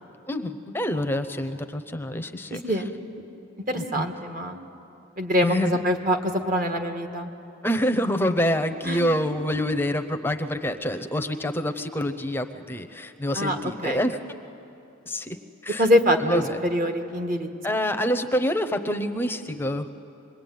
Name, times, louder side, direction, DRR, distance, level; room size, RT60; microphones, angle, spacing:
voice 1, 0.2-2.8 3.7-4.1 5.4-5.8 7.6-14.2 15.1-15.4 15.6-15.9 16.2-16.6 17.6-19.9, equal, 10° left, 8 dB, 0.8 m, -26 dB
voice 2, 3.7-4.6 5.2-7.3 8.8-9.0 13.3-13.5 13.8-14.0 15.8-17.5, equal, 40° right, 5 dB, 1.6 m, -24 dB
25.5 x 21.5 x 9.3 m, 2.8 s
head